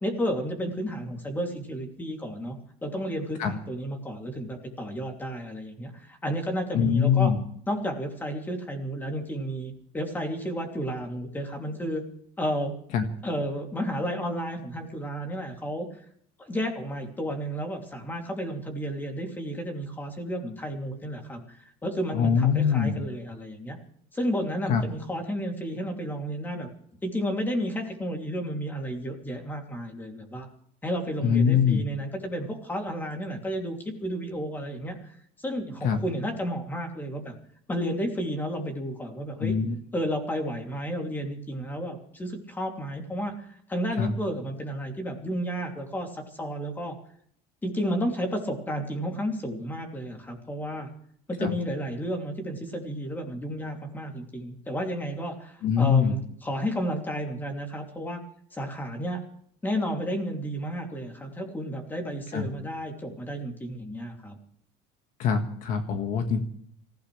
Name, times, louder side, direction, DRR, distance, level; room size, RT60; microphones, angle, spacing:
voice 1, 0.0-7.3 7.7-12.0 12.4-12.7 13.2-15.9 16.4-21.6 21.8-23.8 24.1-26.7 27.0-30.5 30.8-37.4 37.7-39.5 39.9-47.0 47.6-50.9 51.3-58.2 58.5-59.2 59.6-64.4, equal, 10° left, 2 dB, 3.0 m, -32 dB
voice 2, 6.7-7.4 12.9-13.0 22.1-23.0 24.7-24.8 31.2-31.9 35.8-36.0 39.4-39.8 44.0-44.1 51.4-51.5 55.6-56.2 62.3-62.5 65.2-66.4, left 7 dB, 50° left, 5 dB, 1.8 m, -23 dB
26.5 x 16.0 x 3.4 m, 0.64 s
cardioid pair, 160°, 17 cm